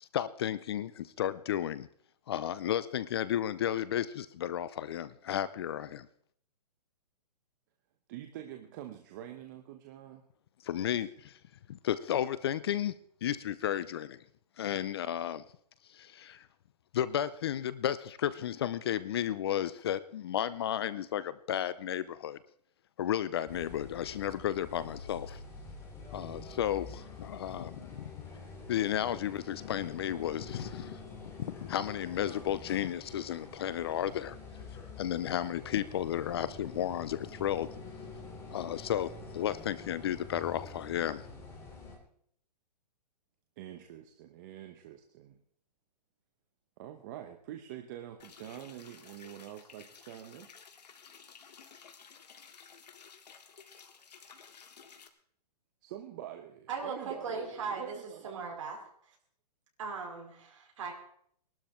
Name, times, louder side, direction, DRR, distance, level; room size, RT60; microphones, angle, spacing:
voice 1, 0.0-1.9 2.3-6.1 10.6-11.4 11.7-12.9 13.2-14.2 14.6-15.4 15.9-16.5 16.9-22.4 23.0-25.4 26.1-28.1 28.7-31.0 31.3-34.4 35.0-37.9 38.5-41.2, left 11 dB, 40° left, 16 dB, 0.6 m, -33 dB
voice 2, 8.1-10.2 10.8-11.1 43.6-45.4 46.8-50.5 55.8-58.3, right 11 dB, 30° right, 5 dB, 1.0 m, -46 dB
sound 1, 23.5-42.0, left 3 dB, 15° left, 2.7 m, -47 dB
sound 2, 48.2-55.1, left 6 dB, 80° left, 2.2 m, -54 dB
voice 3, 56.7-58.0 58.2-58.8 59.8-60.9, right 5 dB, 50° right, 0 dB, 5.1 m, -38 dB
21.0 x 12.0 x 4.4 m, 0.65 s
hypercardioid pair, 165°, 21 cm